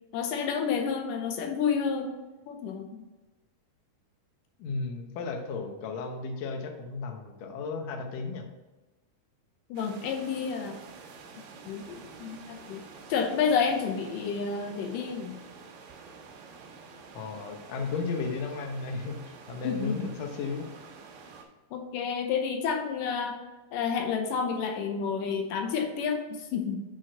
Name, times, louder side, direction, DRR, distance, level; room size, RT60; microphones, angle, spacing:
voice 1, 0.1-2.1 2.5-3.0 9.7-10.8 11.7-12.8 13.1-15.4 19.6-20.1 21.7-23.4 23.7-26.8, left 6 dB, 85° left, 4 dB, 2.5 m, -30 dB
voice 2, 4.6-8.5 17.2-20.7, left 4 dB, 70° left, 3 dB, 1.7 m, -34 dB
sound 1, 9.8-21.4, right 5 dB, 80° right, 2.6 m, -49 dB
6.3 x 4.0 x 6.4 m, 1.2 s
omnidirectional pair, 3.8 m